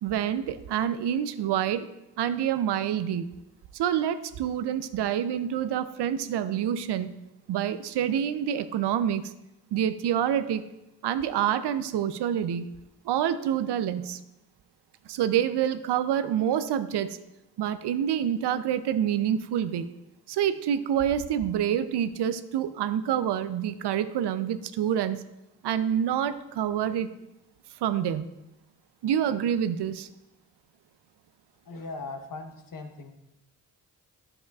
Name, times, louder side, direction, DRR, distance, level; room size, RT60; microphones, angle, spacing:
voice 1, 0.0-1.9 2.2-3.3 3.7-7.1 7.5-9.3 9.7-10.6 11.0-12.7 13.0-14.2 15.1-17.2 17.6-19.9 20.3-25.2 25.6-27.1 27.8-28.2 29.0-30.1, right 9 dB, 70° right, 12 dB, 0.5 m, -27 dB
voice 2, 31.6-33.1, left 3 dB, 50° left, 6 dB, 1.0 m, -39 dB
9.2 x 6.9 x 2.3 m, 0.91 s
supercardioid pair, 50°, 43 cm